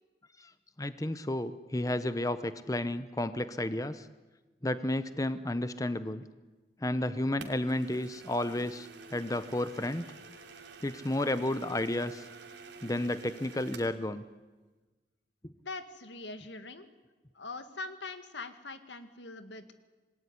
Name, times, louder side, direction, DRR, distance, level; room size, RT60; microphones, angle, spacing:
voice 1, 0.8-4.1 4.6-6.2 6.8-10.1 10.8-12.2 12.8-14.2, left 1 dB, 20° left, 12 dB, 0.8 m, -32 dB
sound 1, 7.4-14.0, right 5 dB, 85° right, 3.2 m, -50 dB
voice 2, 15.6-16.9 17.3-19.8, left 3 dB, 85° left, 9 dB, 2.1 m, -42 dB
26.5 x 20.5 x 9.9 m, 1.3 s
head